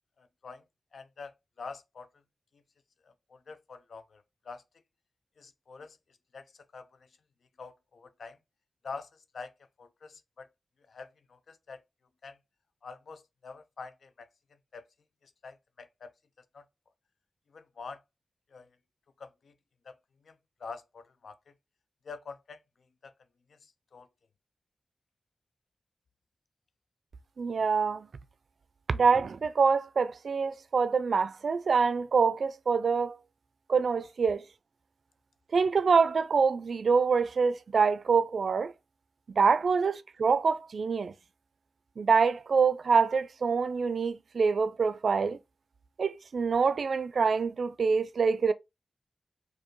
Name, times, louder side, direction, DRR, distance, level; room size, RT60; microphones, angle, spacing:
voice 1, 0.2-0.6 0.9-2.1 3.3-4.6 5.4-6.0 6.3-6.5 6.7-7.1 7.6-8.4 8.8-9.5 9.8-10.5 10.9-11.8 12.2-12.4 12.8-14.3 14.7-14.8 15.2-16.1 16.5-16.6 17.5-18.0 18.5-18.7 19.2-19.5 19.9-20.0 20.2-20.3 20.6-21.4 22.0-22.6 23.0-23.1 23.6-24.1, left 4 dB, 90° left, 0.4 m, -45 dB
voice 2, 27.4-28.1 28.9-33.2 33.7-34.4 35.5-38.7 39.3-41.1 42.0-45.4 46.0-48.5, right 5 dB, 80° right, 0.3 m, -25 dB
4.4 x 2.6 x 3.0 m
cardioid pair, 55°, 0 cm